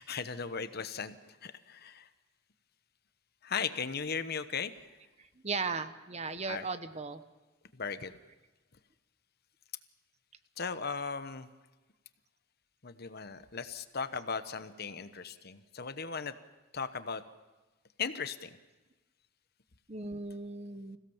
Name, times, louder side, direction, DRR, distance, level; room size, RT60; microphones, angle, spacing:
voice 1, 0.0-2.1 3.4-4.7 6.5-6.7 7.8-8.1 10.6-11.5 12.8-16.3 16.7-17.2 18.0-18.6, left 5 dB, 50° left, 11 dB, 1.0 m, -37 dB
voice 2, 5.4-7.2 19.9-21.0, right 4 dB, 35° right, 11 dB, 1.0 m, -36 dB
27.0 x 16.5 x 7.2 m, 1.2 s
head